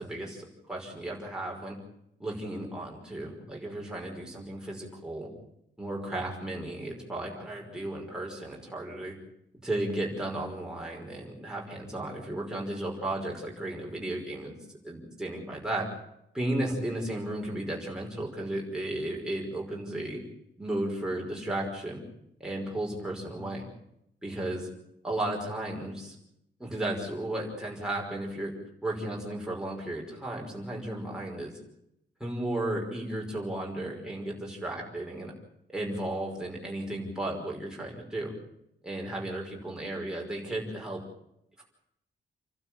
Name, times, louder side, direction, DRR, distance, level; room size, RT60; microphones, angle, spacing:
voice 1, 0.0-1.8 2.2-5.3 5.8-9.1 9.6-15.9 16.3-20.2 20.6-22.0 22.4-23.6 24.2-24.7 25.0-26.2 26.6-28.5 28.8-31.5 32.2-35.3 35.7-38.3 38.8-41.0 41.6-41.7, right 1 dB, 5° right, -2 dB, 5.4 m, -34 dB
29.0 x 12.5 x 9.0 m, 0.79 s
wide cardioid pair, 175°, 20 cm